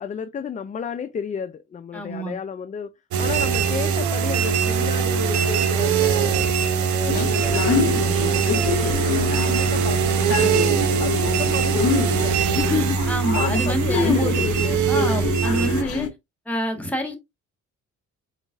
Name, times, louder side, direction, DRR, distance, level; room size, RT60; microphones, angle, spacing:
voice 1, 0.0-2.9 3.2-6.5 6.8-10.7 11.0-15.4, left 6 dB, 25° left, 0.4 m, -32 dB
voice 2, 1.9-2.4 13.1-14.4 14.9-16.1 16.5-17.2, equal, 5° left, 1.5 m, -26 dB
sound 1, 3.1-15.8, right 7 dB, 70° right, 0.7 m, -22 dB
sound 2, 7.1-16.1, left 6 dB, 50° left, 0.9 m, -27 dB
3.9 x 3.9 x 2.5 m
cardioid pair, 90°, 30 cm